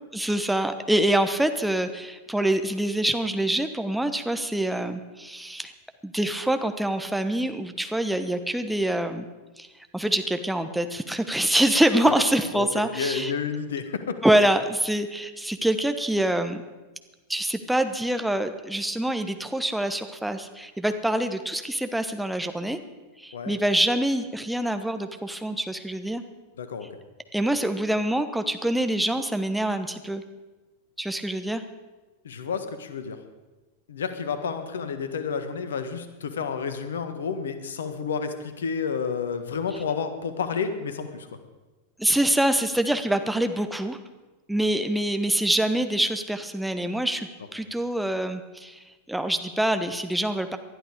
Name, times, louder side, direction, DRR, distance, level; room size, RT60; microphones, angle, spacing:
voice 1, 0.1-5.7 6.0-9.3 9.6-9.7 9.9-13.3 14.2-16.6 17.3-22.8 23.2-26.2 27.3-30.2 31.0-31.6 42.0-44.0 44.5-48.8 49.1-50.6, right 1 dB, 5° right, 8 dB, 1.1 m, -25 dB
voice 2, 12.5-14.1 23.3-23.5 26.6-26.9 32.2-33.2 33.9-41.3, left 6 dB, 65° left, 10 dB, 1.4 m, -30 dB
19.5 x 12.0 x 5.0 m, 1.2 s
figure-of-eight pair, 90°, 0 cm